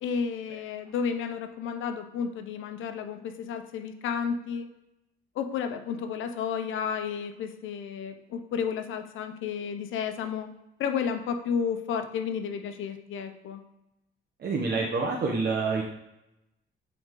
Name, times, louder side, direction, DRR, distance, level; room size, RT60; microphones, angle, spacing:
voice 1, 0.0-4.7 5.3-10.5 10.8-13.6, left 7 dB, 80° left, 6 dB, 0.8 m, -32 dB
voice 2, 14.4-15.8, right 4 dB, 55° right, -2 dB, 1.2 m, -27 dB
7.9 x 3.9 x 3.8 m, 0.90 s
cardioid pair, 90°, 20 cm